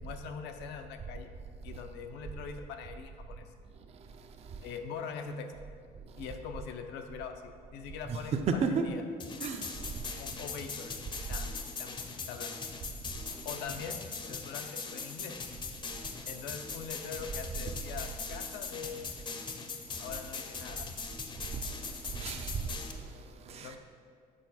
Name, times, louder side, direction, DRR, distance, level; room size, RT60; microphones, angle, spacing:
voice 1, 0.0-1.3 1.6-3.4 4.6-5.5 6.2-9.0 10.2-11.0 11.3-11.5 11.8-12.0 12.3-12.5 13.4-15.4 16.2-19.6 20.0-20.9 23.5-23.8, left 6 dB, 85° left, 6 dB, 0.5 m, -43 dB
voice 2, 8.1-8.9 9.4-9.9 21.5-21.6 22.2-22.7 23.5-23.8, right 5 dB, 40° right, 6 dB, 0.4 m, -32 dB
sound 1, 9.2-22.9, left 5 dB, 30° left, 0.5 m, -41 dB
6.4 x 3.9 x 4.1 m, 2.2 s
cardioid pair, 110°, 17 cm